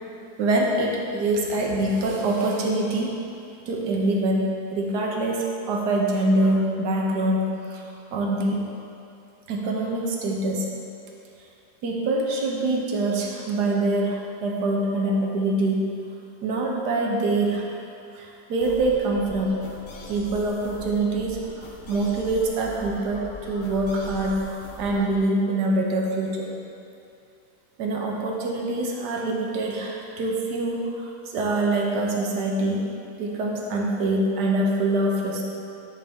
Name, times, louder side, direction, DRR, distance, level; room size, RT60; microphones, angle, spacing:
voice 1, 0.4-3.1 3.7-7.8 8.1-8.6 9.5-10.7 11.8-15.9 16.4-17.7 18.1-19.6 20.1-24.5 24.8-26.5 27.8-32.9 33.2-35.4, right 2 dB, 75° right, -1 dB, 1.4 m, -24 dB
sound 1, 18.6-25.2, left 2 dB, 50° left, 0.5 m, -41 dB
9.7 x 3.5 x 4.3 m, 2.6 s
omnidirectional pair, 1.8 m